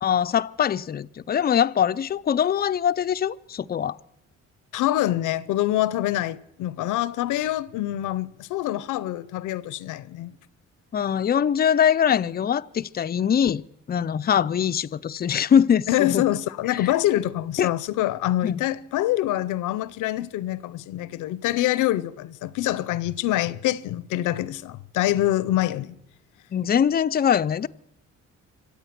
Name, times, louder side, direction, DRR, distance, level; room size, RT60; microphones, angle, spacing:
voice 1, 0.0-4.0 10.9-13.6 13.9-16.2 16.7-16.9 17.6-17.7 18.4-18.6 26.5-27.7, left 8 dB, 30° left, 0.5 m, -22 dB
voice 2, 4.7-10.3 15.9-26.0, left 14 dB, 90° left, 0.7 m, -25 dB
25.0 x 8.4 x 5.9 m
cardioid pair, 90°, 30 cm